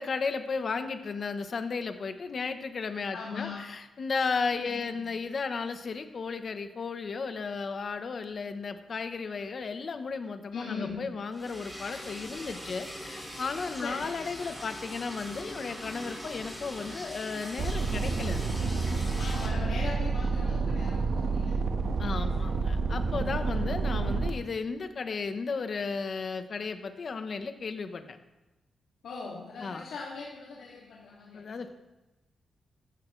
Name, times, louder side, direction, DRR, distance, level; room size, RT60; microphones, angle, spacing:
voice 1, 0.0-18.5 22.0-28.2 29.6-29.8 31.3-31.7, left 4 dB, 45° left, 8 dB, 1.1 m, -34 dB
voice 2, 3.1-3.6 4.5-5.0 10.5-11.0 13.8-14.1 19.2-21.6 22.1-23.2 29.0-31.7, left 4 dB, 80° left, -5 dB, 2.4 m, -40 dB
Liquid, 11.3-19.5, equal, 5° right, 4.4 m, -42 dB
sound 1, 17.6-24.3, right 4 dB, 65° right, 1.4 m, -29 dB
15.5 x 13.5 x 3.3 m, 1.0 s
wide cardioid pair, 130°, 0 cm